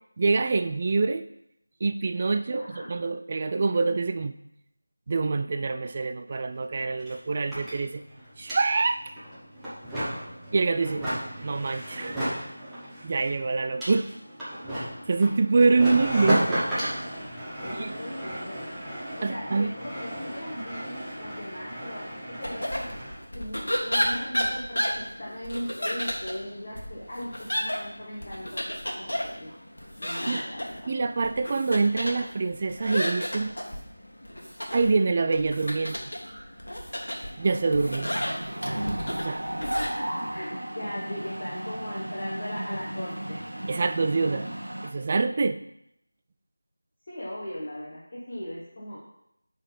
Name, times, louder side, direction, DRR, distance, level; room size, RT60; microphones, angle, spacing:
voice 1, 0.2-1.3 1.8-4.4 5.1-8.0 8.4-9.0 10.5-11.1 11.4-12.3 13.0-14.1 15.1-16.6 17.7-17.9 19.2-19.7 30.3-30.4 30.9-33.6 34.7-36.0 37.4-38.1 39.2-39.4 43.7-44.5 44.8-45.6, right 3 dB, 30° right, 8 dB, 0.3 m, -25 dB
voice 2, 2.5-2.9 17.6-18.6 19.2-22.9 23.3-28.6 29.0-29.6 30.0-30.9 39.6-43.4 47.1-49.0, equal, 35° left, -7 dB, 1.6 m, -38 dB
sound 1, 6.3-6.4 6.6-23.2, right 1 dB, 5° right, 1.1 m, -34 dB
sound 2, 22.4-39.9, equal, 70° left, 1.6 m, -33 dB
Mechanisms, 35.3-35.9 36.3-36.5 36.7-44.9, right 1 dB, 75° right, 1.0 m, -35 dB
9.7 x 4.0 x 4.0 m, 0.78 s
figure-of-eight pair, 170°, 0 cm